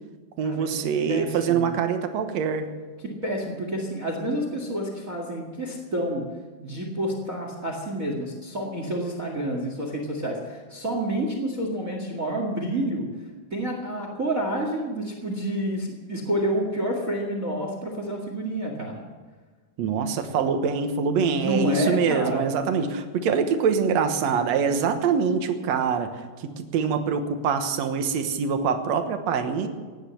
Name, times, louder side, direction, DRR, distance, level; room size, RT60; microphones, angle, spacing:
voice 1, 0.4-2.7 19.8-29.7, right 6 dB, 60° right, 7 dB, 1.9 m, -24 dB
voice 2, 1.1-1.7 3.0-6.2 6.6-13.1 13.5-19.0 21.3-22.5, right 1 dB, 30° right, 2 dB, 1.6 m, -29 dB
17.5 x 10.5 x 7.7 m, 1.4 s
omnidirectional pair, 4.4 m